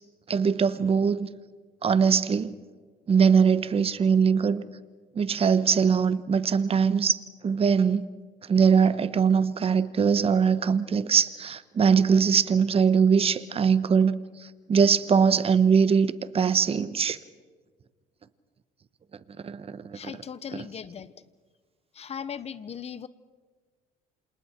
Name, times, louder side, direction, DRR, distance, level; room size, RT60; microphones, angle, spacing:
voice 1, 0.3-1.3 1.8-2.5 3.1-4.6 5.2-7.2 7.4-8.0 8.5-14.2 14.7-17.2 19.4-19.8, right 6 dB, 35° right, 1.1 m, -21 dB
voice 2, 19.9-21.1 21.9-23.1, left 7 dB, 40° left, 1.0 m, -38 dB
28.5 x 27.5 x 4.5 m
cardioid pair, 110°, 17 cm